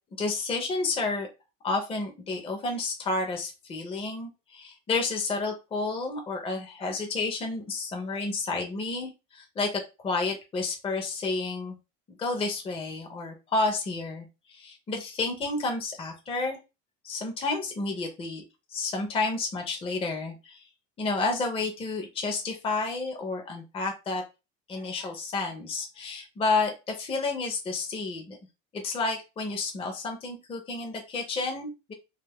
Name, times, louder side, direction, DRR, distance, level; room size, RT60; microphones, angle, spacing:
voice 1, 0.2-1.3 1.6-11.7 12.1-16.6 17.0-18.4 18.7-20.6 21.0-24.2 24.7-28.4 28.7-31.9, left 3 dB, 20° left, 2 dB, 0.5 m, -30 dB
2.4 x 2.4 x 3.4 m, 0.27 s
cardioid pair, 140°, 30 cm